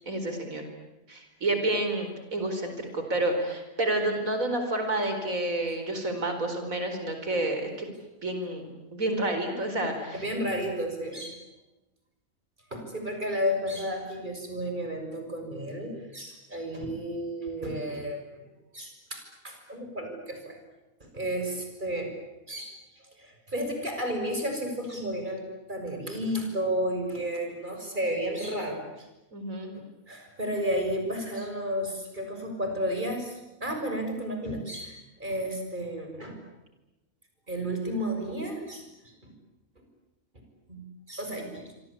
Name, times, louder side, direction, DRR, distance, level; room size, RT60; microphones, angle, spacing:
voice 1, 0.1-0.7 1.1-7.9 8.2-10.2 29.3-29.7, right 1 dB, 75° right, 6 dB, 4.9 m, -29 dB
voice 2, 10.1-11.4 12.7-18.2 18.7-20.6 21.0-22.1 22.5-25.4 25.7-29.1 29.7-36.4 37.5-39.3 39.8-39.9 40.7-40.8 41.1-41.6, equal, 35° right, 4 dB, 6.7 m, -32 dB
26.0 x 26.0 x 8.6 m, 1.0 s
omnidirectional pair, 1.4 m